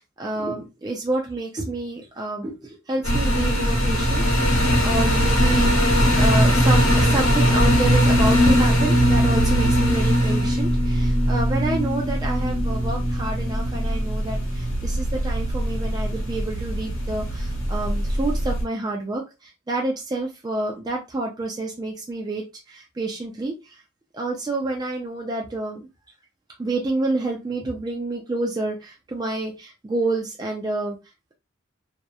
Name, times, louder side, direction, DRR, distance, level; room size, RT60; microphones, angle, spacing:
voice 1, 0.0-4.6 4.8-5.7 6.1-23.8 24.1-25.9 26.6-31.0, right 2 dB, 20° right, 0.4 m, -28 dB
sound 1, 3.0-18.6, equal, 85° left, 0.9 m, -20 dB
2.8 x 2.0 x 2.3 m
head